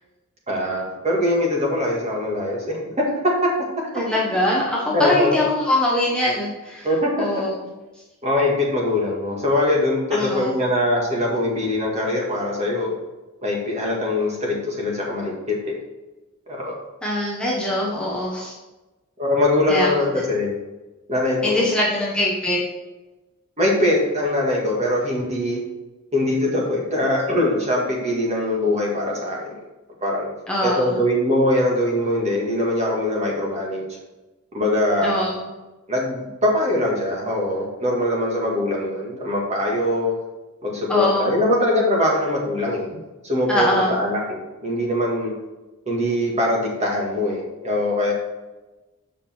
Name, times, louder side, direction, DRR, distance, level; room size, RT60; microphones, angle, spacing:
voice 1, 0.5-3.5 4.9-5.3 6.8-7.3 8.2-12.9 13.4-15.7 16.5-16.8 19.2-20.5 21.1-21.7 23.6-25.6 26.1-29.5 30.0-30.3 30.6-33.9 34.5-35.3 35.9-40.1 40.6-43.0 43.2-45.3 45.9-48.1, left 1 dB, 30° right, -2 dB, 1.8 m, -22 dB
voice 2, 3.9-6.9 7.2-7.5 10.1-10.6 17.0-18.6 19.7-19.9 21.4-22.6 30.5-30.9 35.0-35.5 40.9-41.3 43.5-43.9, left 1 dB, 5° left, -5 dB, 1.1 m, -22 dB
7.3 x 5.2 x 4.4 m, 1.1 s
head